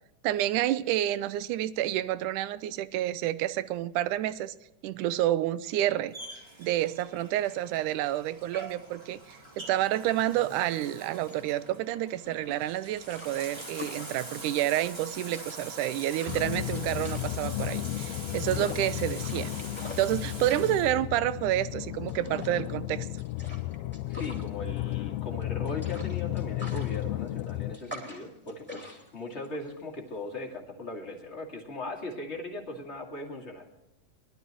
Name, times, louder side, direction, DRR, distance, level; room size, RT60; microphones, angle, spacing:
voice 1, 0.2-4.5 4.8-6.2 6.6-19.5 20.0-23.1, right 13 dB, 85° right, 2.1 m, -29 dB
Bathtub (filling or washing), 6.1-20.9, right 2 dB, 10° right, 1.4 m, -44 dB
sound 1, 10.9-30.6, left 1 dB, 5° left, 2.5 m, -46 dB
sound 2, 16.3-27.8, left 16 dB, 85° left, 1.4 m, -34 dB
voice 2, 24.1-33.6, left 2 dB, 25° left, 2.3 m, -39 dB
22.0 x 12.5 x 3.1 m
omnidirectional pair, 3.6 m